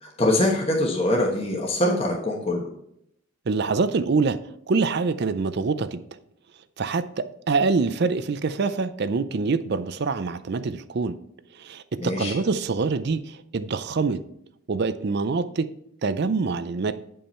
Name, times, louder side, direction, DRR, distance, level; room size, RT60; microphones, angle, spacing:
voice 1, 0.0-2.7 12.0-12.3, left 1 dB, 30° left, -1 dB, 1.1 m, -23 dB
voice 2, 3.5-4.4 4.7-6.0 6.8-11.2 11.5-14.2 14.7-15.7 16.0-16.9, right 4 dB, 50° right, 12 dB, 0.5 m, -25 dB
8.7 x 5.4 x 4.3 m, 0.74 s
head